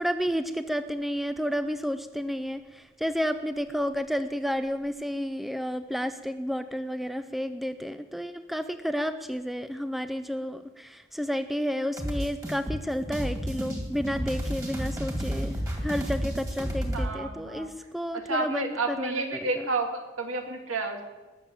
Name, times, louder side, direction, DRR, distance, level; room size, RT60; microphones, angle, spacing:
voice 1, 0.0-19.7, equal, ahead, 10 dB, 0.4 m, -31 dB
sound 1, 12.0-17.1, equal, 15° right, 2.2 m, -31 dB
voice 2, 16.9-17.7 18.3-21.0, right 3 dB, 90° right, 4 dB, 2.1 m, -30 dB
19.5 x 7.2 x 7.4 m, 1.2 s
head